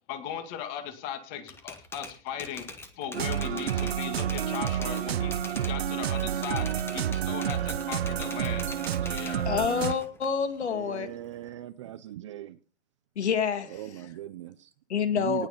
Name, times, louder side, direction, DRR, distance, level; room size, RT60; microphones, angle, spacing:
voice 1, 0.1-2.6 3.0-8.7 9.0-9.5, left 9 dB, 25° left, 8 dB, 2.1 m, -38 dB
Typewriter, 1.5-5.8 6.1-9.4 9.8-11.5, left 3 dB, 5° left, 1.1 m, -43 dB
sound 1, 3.1-9.9, right 10 dB, 60° right, 0.9 m, -29 dB
voice 2, 9.5-11.1 13.2-13.8 14.9-15.5, left 7 dB, 70° left, 9 dB, 2.4 m, -27 dB
voice 3, 10.6-12.6 13.6-14.7 15.1-15.5, right 13 dB, 25° right, 13 dB, 0.6 m, -39 dB
18.5 x 6.6 x 5.2 m, 0.38 s
hypercardioid pair, 155°, 35 cm